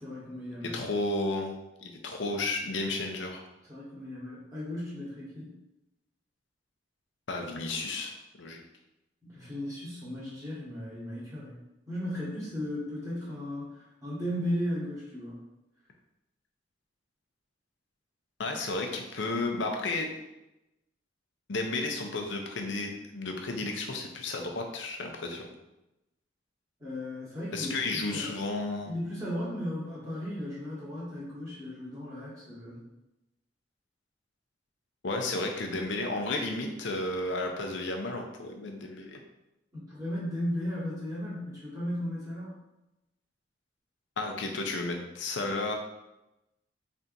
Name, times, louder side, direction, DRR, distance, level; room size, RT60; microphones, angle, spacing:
voice 1, 0.0-0.8 3.7-5.5 9.2-15.4 26.8-28.3 28.8-32.8 39.7-42.6, left 1 dB, 20° right, -9 dB, 1.5 m, -36 dB
voice 2, 0.6-3.4 7.3-8.6 18.4-20.2 21.5-25.5 27.5-28.9 35.0-39.2 44.2-45.8, left 2 dB, 75° left, 3 dB, 0.6 m, -33 dB
4.2 x 3.4 x 2.6 m, 0.93 s
head